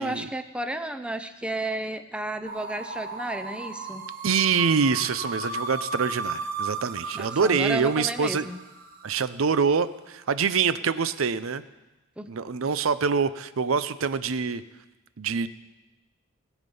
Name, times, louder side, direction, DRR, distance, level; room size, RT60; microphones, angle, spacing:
voice 1, 0.0-4.0 7.1-8.6 12.2-12.3, right 1 dB, 5° right, 9 dB, 0.6 m, -32 dB
sound 1, 2.5-9.4, right 3 dB, 45° right, 1.2 m, -35 dB
voice 2, 4.2-8.5 9.0-11.6 12.3-14.6 15.2-15.5, right 5 dB, 75° right, 14 dB, 0.6 m, -25 dB
20.0 x 7.2 x 5.4 m, 1.1 s
head